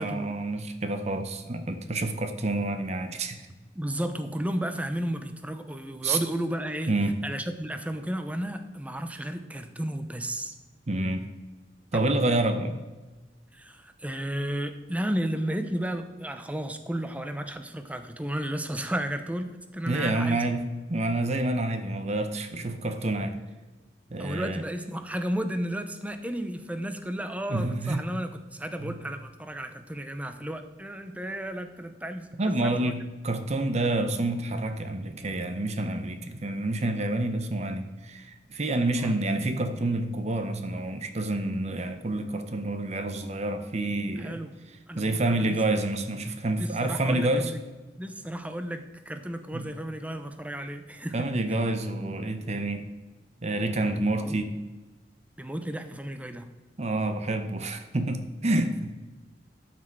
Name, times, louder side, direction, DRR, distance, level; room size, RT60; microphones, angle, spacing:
voice 1, 0.0-3.3 6.0-6.2 6.9-7.2 10.9-11.2 11.9-12.8 19.9-23.4 24.1-24.6 27.5-28.0 28.8-29.0 32.4-44.4 44.9-47.5 49.5-49.7 51.1-52.8 53.4-54.6 56.8-58.9, right 2 dB, 40° right, 8 dB, 0.8 m, -28 dB
voice 2, 3.7-6.9 7.2-10.5 13.5-20.4 24.2-32.9 39.0-39.1 44.2-44.5 44.9-45.6 46.6-47.6 48.0-51.2 53.8-54.4 55.4-56.5, right 1 dB, 10° right, 8 dB, 0.7 m, -33 dB
12.0 x 6.1 x 4.7 m, 1.2 s
head